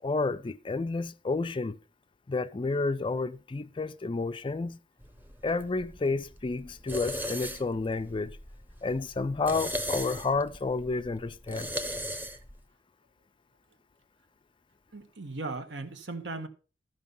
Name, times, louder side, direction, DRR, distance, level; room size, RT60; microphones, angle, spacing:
voice 1, 0.0-1.8 2.3-4.8 5.4-8.4 8.8-11.7, left 3 dB, 25° left, 0.4 m, -30 dB
sound 1, 5.0-12.6, equal, 10° right, 0.9 m, -38 dB
voice 2, 14.9-16.5, right 3 dB, 70° right, 1.4 m, -37 dB
13.5 x 5.5 x 5.4 m
head